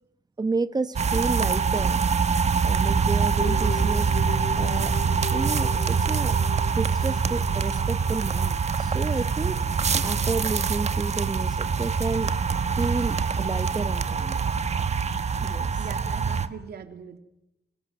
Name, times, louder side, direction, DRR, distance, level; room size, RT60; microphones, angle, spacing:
voice 1, 0.4-2.0 2.6-4.1 4.5-4.9 5.3-6.4 6.8-9.6 10.0-12.3 12.8-14.4 15.4-15.7, right 3 dB, 25° right, 13 dB, 1.1 m, -31 dB
sound 1, 0.9-16.5, right 5 dB, 40° right, 1.4 m, -24 dB
sound 2, 3.4-8.0, left 3 dB, 60° left, 3.8 m, -38 dB
voice 2, 15.8-17.2, right 7 dB, 75° right, 6 dB, 3.2 m, -41 dB
26.5 x 17.5 x 9.2 m, 0.90 s
wide cardioid pair, 130°, 17 cm